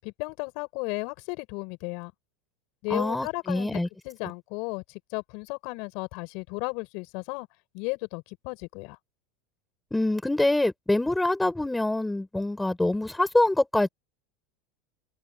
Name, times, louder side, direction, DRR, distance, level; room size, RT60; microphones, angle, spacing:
voice 1, 0.0-2.1 2.8-7.5 7.7-9.0, left 30 dB, 60° left, 7.9 m, -34 dB
voice 2, 2.9-3.9 9.9-13.9, left 2 dB, 5° left, 5.4 m, -25 dB
supercardioid pair, 135°, 0 cm